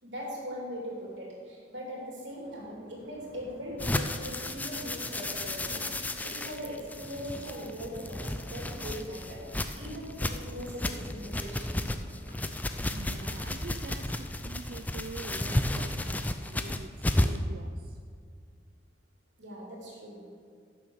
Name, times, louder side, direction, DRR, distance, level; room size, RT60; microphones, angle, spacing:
voice 1, 0.0-11.8 19.4-20.2, equal, 85° right, -3 dB, 3.3 m, -40 dB
Thunder, 2.3-17.0, equal, 70° left, 3.2 m, -51 dB
sound 1, 3.8-17.5, left 1 dB, 10° left, 0.4 m, -33 dB
voice 2, 12.9-18.0, right 3 dB, 55° right, 6 dB, 0.5 m, -45 dB
11.5 x 6.9 x 6.6 m, 2.2 s
head